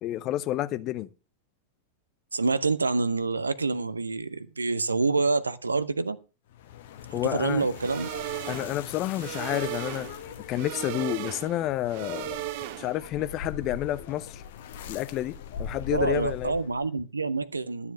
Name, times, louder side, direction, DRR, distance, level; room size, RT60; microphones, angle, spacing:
voice 1, 0.0-1.1 7.1-7.7 8.5-10.1 10.5-12.4 12.8-14.4 14.9-16.5, left 13 dB, 35° left, 0.7 m, -30 dB
voice 2, 2.3-6.2 7.2-8.1 15.9-17.9, right 3 dB, 80° right, 0.7 m, -27 dB
sound 1, 6.5-16.9, left 7 dB, 55° left, 1.1 m, -42 dB
sound 2, 7.7-13.1, right 13 dB, 50° right, 0.8 m, -36 dB
12.5 x 7.1 x 6.2 m
figure-of-eight pair, 90°, 0 cm